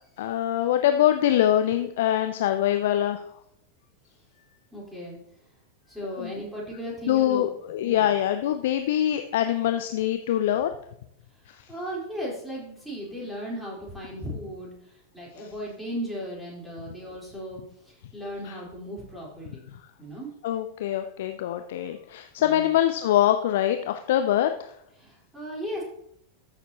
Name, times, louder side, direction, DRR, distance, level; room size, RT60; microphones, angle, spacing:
voice 1, 0.2-3.2 6.2-6.3 7.1-10.7 11.5-11.6 18.5-18.6 20.4-24.7, left 11 dB, 55° left, 7 dB, 0.5 m, -24 dB
voice 2, 4.7-5.2 5.9-7.5 7.8-8.1 11.4-17.6 17.8-19.7 20.0-20.3 22.4-22.7 25.0-25.8, equal, 5° right, -5 dB, 4.0 m, -36 dB
13.5 x 6.7 x 2.9 m, 0.72 s
figure-of-eight pair, 90°, 0 cm